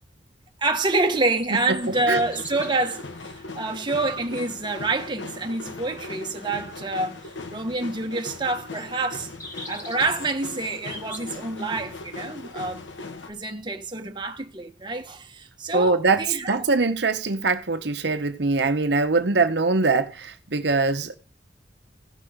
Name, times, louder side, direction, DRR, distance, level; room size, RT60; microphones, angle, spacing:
voice 1, 0.6-7.2 7.5-9.3 9.7-12.8 13.3-16.6, right 2 dB, 25° right, 1.2 m, -27 dB
sound 1, 1.4-3.0 4.0-4.1 8.8-11.4, left 2 dB, 20° left, 1.8 m, -42 dB
voice 2, 1.7-2.2 15.7-21.2, right 3 dB, 65° right, 1.0 m, -23 dB
sound 2, 1.8-13.3, left 3 dB, 80° left, 1.9 m, -39 dB
16.0 x 6.3 x 5.1 m
head